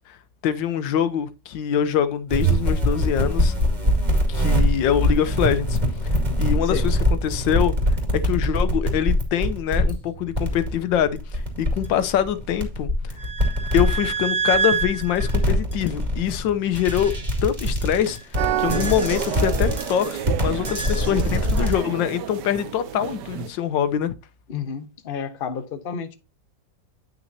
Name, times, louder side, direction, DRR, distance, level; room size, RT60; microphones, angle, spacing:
voice 1, 0.4-3.5 4.3-7.7 8.1-13.2 13.7-17.1 17.4-24.1, left 9 dB, 85° left, 1.5 m, -24 dB
sound 1, 2.3-21.8, equal, 25° right, 2.3 m, -23 dB
sound 2, 18.4-23.5, right 10 dB, 70° right, 1.2 m, -30 dB
voice 2, 24.5-26.1, left 7 dB, 40° left, 1.0 m, -31 dB
10.5 x 5.9 x 2.7 m
omnidirectional pair, 2.0 m